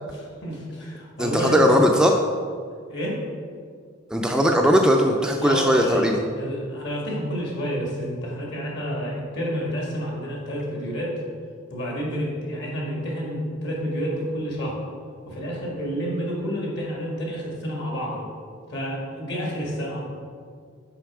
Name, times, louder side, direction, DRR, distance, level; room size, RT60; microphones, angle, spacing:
voice 1, 0.1-1.8 2.9-3.2 5.4-11.1 11.7-14.8 15.3-18.3 18.7-20.0, equal, 60° left, -3 dB, 1.8 m, -29 dB
voice 2, 1.2-2.2 4.1-6.2, equal, 5° right, 1 dB, 0.3 m, -19 dB
5.8 x 5.3 x 4.9 m, 2.1 s
head